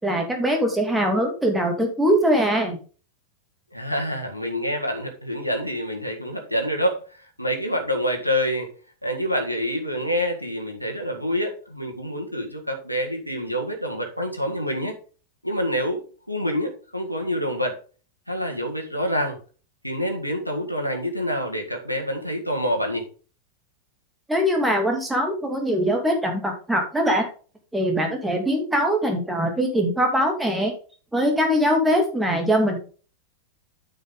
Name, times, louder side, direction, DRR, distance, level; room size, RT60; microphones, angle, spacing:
voice 1, 0.0-2.8 24.3-27.2 27.7-30.7 31.1-32.8, equal, 5° right, 2 dB, 2.8 m, -22 dB
voice 2, 3.7-8.7 9.0-14.9 15.4-16.0 16.3-17.8 18.3-19.4 19.8-23.0, equal, 90° right, 1 dB, 1.8 m, -27 dB
9.3 x 6.8 x 3.9 m, 0.38 s
figure-of-eight pair, 90°, 0 cm